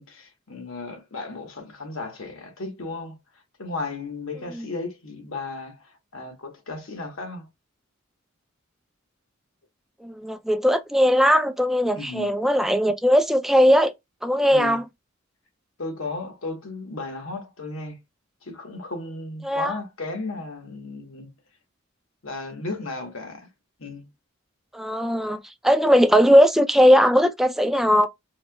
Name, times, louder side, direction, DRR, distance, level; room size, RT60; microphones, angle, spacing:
voice 1, 0.1-3.2 3.6-7.5 11.9-12.3 14.5-14.8 15.8-18.0 18.4-21.3 22.2-23.5 23.8-24.1, left 3 dB, 80° left, 1.1 m, -35 dB
voice 2, 10.0-13.9 14.2-14.9 19.4-19.7 24.7-28.1, equal, ahead, 0.3 m, -19 dB
4.2 x 2.7 x 2.2 m
head